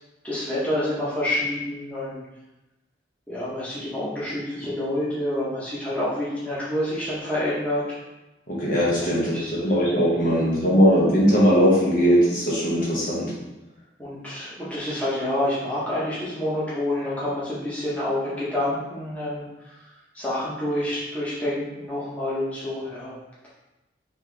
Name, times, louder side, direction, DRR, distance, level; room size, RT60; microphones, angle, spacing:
voice 1, 0.2-2.2 3.3-8.0 9.0-9.7 10.3-10.5 14.0-19.4 20.1-23.1, left 1 dB, 10° left, -9 dB, 1.1 m, -28 dB
voice 2, 8.5-9.4 9.6-13.3, equal, 45° left, -6 dB, 1.1 m, -19 dB
4.3 x 2.9 x 3.4 m, 1.0 s
head